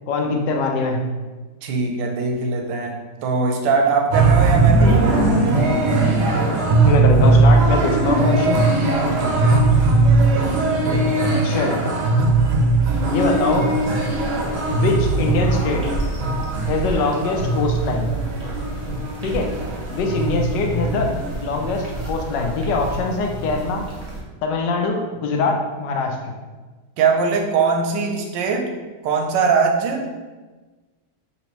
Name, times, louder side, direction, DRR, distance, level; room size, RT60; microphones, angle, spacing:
voice 1, 0.1-1.0 4.8-5.4 6.8-8.6 11.4-11.8 13.1-13.8 14.7-15.9 16.7-18.1 19.2-19.5 19.9-21.1 21.4-23.9 24.4-26.3, left 3 dB, 80° left, 2 dB, 1.2 m, -23 dB
voice 2, 1.6-5.0 9.1-9.7 27.0-28.7 29.0-30.1, right 4 dB, 85° right, 2 dB, 1.3 m, -21 dB
sound 1, 4.1-22.1 22.4-22.5 22.7-23.4, right 3 dB, 65° right, 0.8 m, -19 dB
sound 2, 12.8-24.2, right 1 dB, 35° right, 0.6 m, -32 dB
4.2 x 2.8 x 3.0 m, 1.3 s
omnidirectional pair, 1.9 m